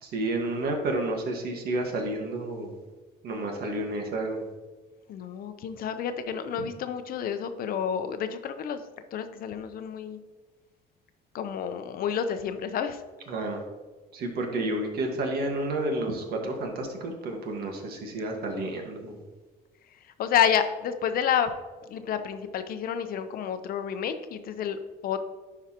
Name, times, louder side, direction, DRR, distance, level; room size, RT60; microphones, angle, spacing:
voice 1, 0.0-2.8 3.2-4.5 6.6-6.7 13.3-13.6 14.1-19.2, right 2 dB, 65° right, 2 dB, 1.6 m, -30 dB
voice 2, 5.1-8.8 9.1-10.2 11.3-13.0 20.2-21.5 21.9-25.2, left 8 dB, 60° left, 9 dB, 0.7 m, -29 dB
11.0 x 4.8 x 2.9 m, 1.3 s
cardioid pair, 110°, 17 cm